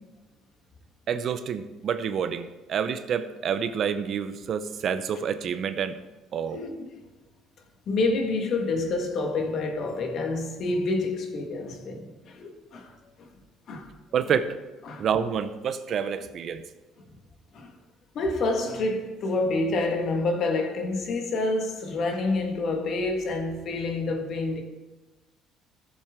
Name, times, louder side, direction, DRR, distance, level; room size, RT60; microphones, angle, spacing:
voice 1, 1.1-6.0 6.3-6.6 14.1-14.5 15.0-16.6, right 7 dB, 45° right, 0.6 m, -28 dB
voice 2, 7.9-13.3 13.7-13.9 14.3-14.4 14.8-15.4 17.5-17.7 18.1-24.6, left 2 dB, 50° left, 1.6 m, -28 dB
15.0 x 7.3 x 3.7 m
cardioid pair, 130°, 0 cm